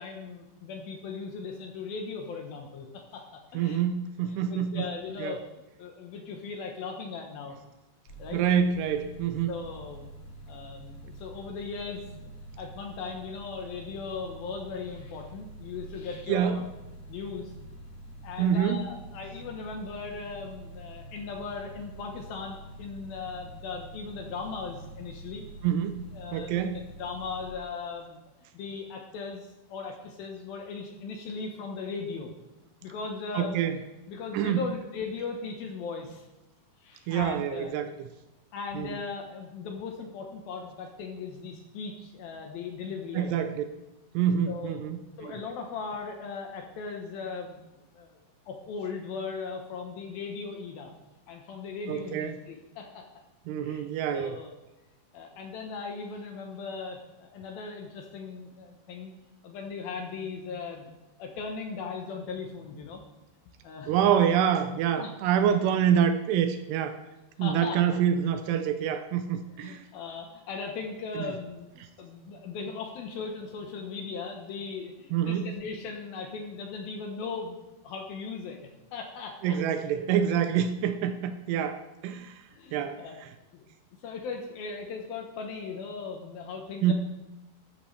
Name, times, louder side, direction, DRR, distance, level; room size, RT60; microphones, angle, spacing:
voice 1, 0.0-3.8 4.2-5.4 5.8-7.6 8.2-8.4 9.5-10.1 10.5-12.1 12.6-16.6 17.1-17.5 18.2-25.4 26.1-28.2 28.5-32.3 32.8-33.6 34.1-36.3 36.8-37.8 38.5-43.5 44.5-44.9 45.2-47.6 47.9-48.2 48.5-50.9 51.3-53.1 53.6-53.8 54.1-54.5 55.1-59.1 59.4-60.9 61.2-63.0 63.6-64.2 65.0-65.1 67.4-68.0 69.5-79.6 82.5-83.2 83.5-83.6 84.0-86.9, left 5 dB, 70° left, 3 dB, 2.4 m, -38 dB
voice 2, 3.5-4.9 5.2-5.4 8.3-9.5 16.3-16.6 18.4-18.8 25.6-26.0 26.3-26.8 33.3-33.8 34.3-34.6 37.1-37.9 38.7-38.9 43.2-43.6 44.1-45.3 51.9-52.3 53.5-54.4 63.9-67.0 67.4-69.8 75.1-75.4 79.4-82.3 82.7-83.0 86.8-86.9, right 9 dB, 80° right, 9 dB, 2.6 m, -26 dB
sound 1, 8.1-27.5, right 1 dB, 50° left, 3.5 m, -46 dB
13.5 x 13.0 x 3.2 m, 1.0 s
omnidirectional pair, 5.1 m